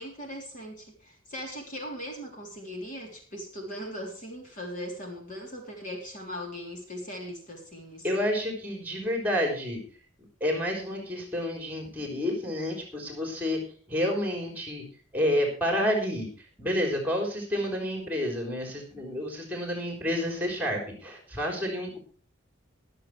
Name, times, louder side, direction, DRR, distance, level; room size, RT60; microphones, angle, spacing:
voice 1, 0.0-8.1, equal, 40° left, 1 dB, 3.4 m, -39 dB
voice 2, 8.0-9.8 10.4-13.6 13.9-14.8 15.1-22.0, left 1 dB, 10° right, 2 dB, 3.8 m, -29 dB
23.0 x 7.7 x 3.3 m, 0.43 s
head